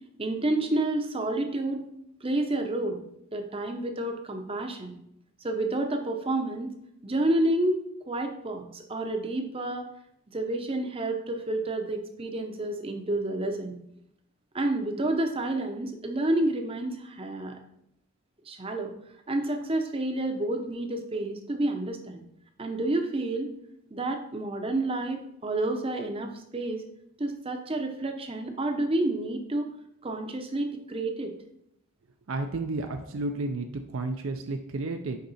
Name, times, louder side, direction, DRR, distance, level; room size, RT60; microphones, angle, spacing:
voice 1, 0.2-1.9 2.2-3.0 3.3-5.0 5.4-6.8 7.0-9.9 10.3-13.8 14.5-17.6 18.5-18.9 19.3-22.2 22.6-23.5 23.9-26.8 27.2-29.7 30.0-31.3, right 2 dB, 25° right, 5 dB, 0.7 m, -29 dB
voice 2, 32.3-33.7 33.9-35.2, right 2 dB, 60° right, 5 dB, 0.5 m, -31 dB
6.6 x 5.3 x 4.1 m, 0.78 s
head